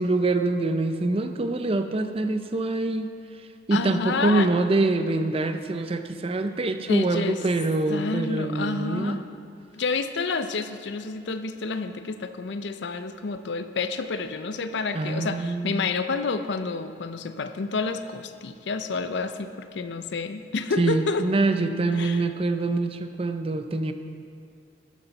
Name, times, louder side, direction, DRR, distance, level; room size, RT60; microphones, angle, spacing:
voice 1, 0.0-3.1 3.7-9.2 14.9-15.9 20.8-23.9, right 2 dB, 30° right, 8 dB, 0.5 m, -25 dB
voice 2, 3.7-4.5 6.9-7.4 7.9-9.2 9.7-21.3 22.0-22.2, left 4 dB, 65° left, 9 dB, 0.5 m, -29 dB
12.5 x 9.7 x 4.0 m, 2.4 s
head